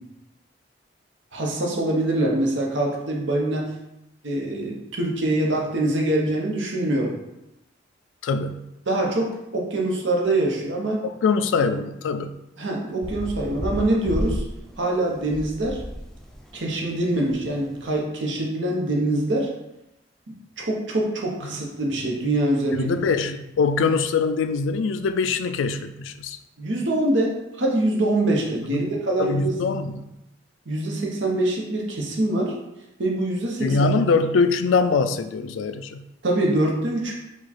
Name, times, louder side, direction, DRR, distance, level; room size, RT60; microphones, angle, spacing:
voice 1, 1.3-3.7 4.2-7.1 8.9-11.0 12.6-14.4 14.8-15.8 16.5-19.5 20.6-22.9 26.6-29.6 30.7-32.6 33.0-33.8 36.2-37.1, right 1 dB, 75° right, -1 dB, 1.0 m, -24 dB
voice 2, 8.2-8.7 11.0-12.4 21.4-21.6 22.7-26.4 28.7-28.9 29.2-30.1 33.6-36.1, left 4 dB, 85° left, 10 dB, 0.3 m, -23 dB
sound 1, 13.0-18.0, equal, ahead, 0.4 m, -33 dB
4.8 x 2.3 x 4.2 m, 0.90 s
head